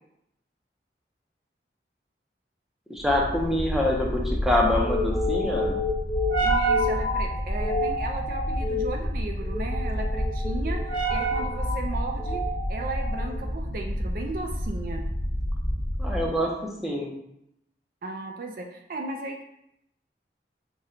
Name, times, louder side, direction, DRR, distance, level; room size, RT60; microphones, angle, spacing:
voice 1, 2.9-5.8 16.0-16.5 16.8-17.1, left 1 dB, ahead, -3 dB, 0.5 m, -25 dB
sound 1, 3.0-16.4, equal, 20° left, 1.0 m, -27 dB
voice 2, 6.4-12.4 12.7-15.0 18.0-19.4, right 2 dB, 50° right, 3 dB, 0.3 m, -35 dB
4.3 x 2.2 x 3.7 m, 0.79 s
head